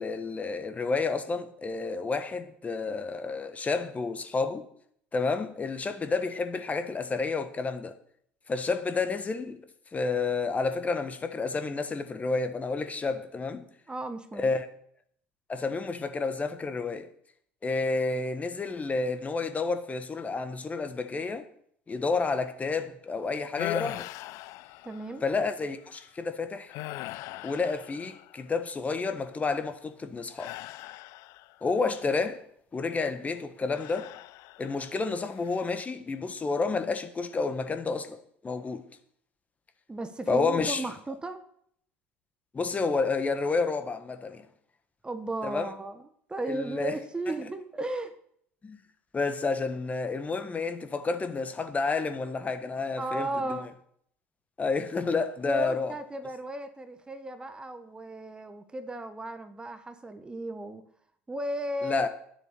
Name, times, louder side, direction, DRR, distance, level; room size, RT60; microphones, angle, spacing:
voice 1, 0.0-4.6 5.1-8.0 8.5-9.6 9.9-13.7 14.3-14.7 15.5-17.1 17.6-21.5 21.9-24.1 25.2-26.7 27.4-30.5 31.6-32.4 32.7-34.1 34.6-38.8 40.3-40.9 42.5-44.5 45.4-45.7 46.5-47.0 48.6-48.8 49.1-53.6 54.6-55.9 61.8-62.1, left 4 dB, 25° left, 1.4 m, -30 dB
voice 2, 13.9-14.5 24.8-25.2 39.9-41.4 45.0-46.0 46.3-48.1 53.0-53.7 55.4-60.8 61.3-62.1, right 1 dB, 15° right, 1.2 m, -35 dB
sound 1, 23.6-25.3 25.8-26.1 26.7-28.6 30.4-31.7 33.7-34.9 35.3-35.7, left 17 dB, 55° left, 0.4 m, -40 dB
10.0 x 8.0 x 6.7 m
hypercardioid pair, 70°, 6 cm